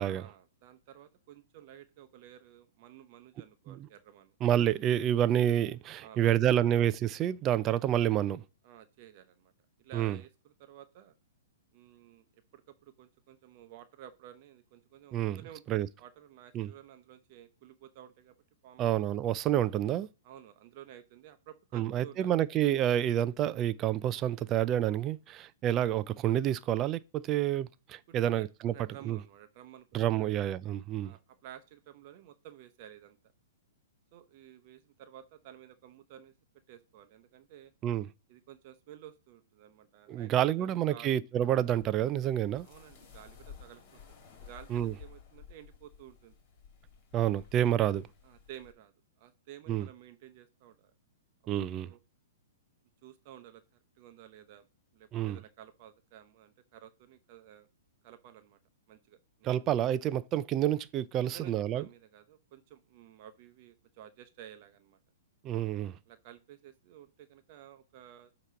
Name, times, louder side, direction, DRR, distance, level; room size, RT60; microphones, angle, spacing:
voice 1, 0.1-4.3 6.0-6.7 8.6-9.5 9.8-11.2 11.7-18.4 18.6-18.9 20.2-22.5 28.1-30.3 31.0-33.2 34.1-36.3 36.7-37.7 38.3-41.1 42.6-46.3 48.2-50.9 51.6-52.0 53.0-53.6 54.0-54.7 54.9-57.7 58.0-58.6 58.9-59.5 61.2-65.0 66.1-68.3, right 11 dB, 45° right, 0.8 m, -53 dB
voice 2, 4.4-8.4 9.9-10.2 15.1-15.4 15.7-15.9 16.5-16.7 18.8-20.1 21.7-28.7 29.1-29.2 29.9-31.1 37.8-38.1 40.1-42.7 44.7-44.9 47.1-48.1 49.7-49.9 51.5-51.9 55.1-55.4 59.4-61.8 65.4-66.0, right 11 dB, 25° right, 0.4 m, -28 dB
sound 1, 41.7-48.7, left 7 dB, 40° left, 2.2 m, -54 dB
8.0 x 3.0 x 5.7 m
hypercardioid pair, 135°, 0 cm